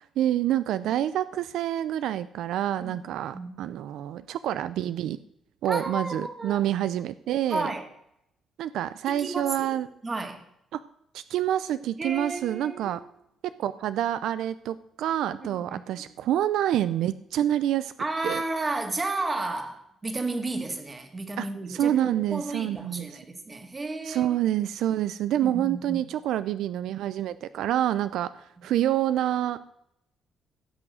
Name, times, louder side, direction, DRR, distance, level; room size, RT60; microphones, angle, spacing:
voice 1, 0.2-5.2 5.6-7.7 8.6-9.9 10.7-10.8 11.1-13.0 13.6-17.9 18.2-18.4 21.4-23.1 24.0-29.7, right 11 dB, 85° right, 14 dB, 0.5 m, -27 dB
voice 2, 5.6-6.6 7.5-7.9 9.1-10.4 12.0-13.0 15.4-16.1 18.0-24.3 25.4-26.0, right 2 dB, 25° right, 6 dB, 2.0 m, -33 dB
16.0 x 6.2 x 8.0 m, 0.78 s
cardioid pair, 130°, 0 cm